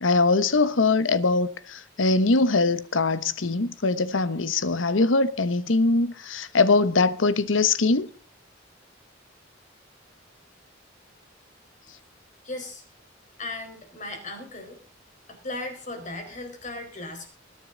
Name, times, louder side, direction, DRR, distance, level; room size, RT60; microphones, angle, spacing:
voice 1, 0.0-8.1, left 3 dB, 85° left, 1.0 m, -22 dB
voice 2, 12.4-12.8 13.4-14.8 15.3-17.3, left 2 dB, 40° left, 4.5 m, -36 dB
20.5 x 9.8 x 3.9 m
head